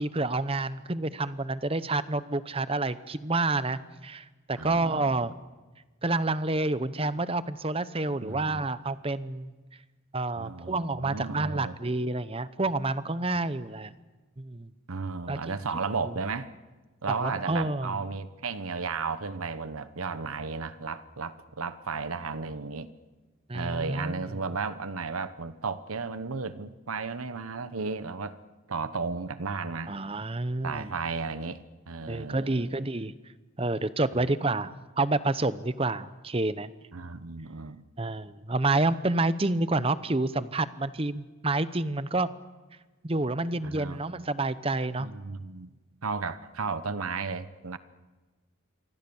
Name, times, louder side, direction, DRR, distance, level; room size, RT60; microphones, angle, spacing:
voice 1, 0.0-5.4 6.0-9.5 10.1-13.9 14.4-14.7 15.3-15.6 16.1-16.2 17.1-18.0 23.5-24.2 29.9-30.9 32.1-33.2 33.6-36.7 38.0-42.3 43.0-45.1, right 2 dB, 25° right, 0.8 m, -29 dB
voice 2, 4.6-5.2 8.2-8.6 10.4-11.8 14.9-16.5 17.0-22.9 23.5-28.4 28.7-29.9 30.6-32.7 34.1-34.3 36.9-37.8 43.6-44.0 45.0-45.7 46.0-47.8, right 4 dB, 85° right, 1.1 m, -34 dB
27.5 x 24.0 x 7.1 m
head